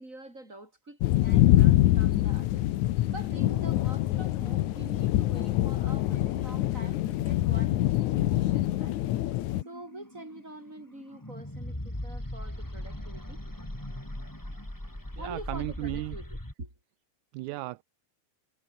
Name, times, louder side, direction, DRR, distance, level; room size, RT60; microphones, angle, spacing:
voice 1, 0.0-2.7 3.1-9.0 9.6-13.4 15.2-16.7, right 2 dB, 20° right, 8.2 m, -46 dB
sound 1, 1.0-9.6, left 15 dB, 70° left, 2.1 m, -25 dB
sound 2, 1.9-16.5, left 1 dB, 5° left, 3.2 m, -42 dB
voice 2, 15.1-16.2 17.3-17.8, right 19 dB, 80° right, 1.8 m, -35 dB
omnidirectional pair, 3.9 m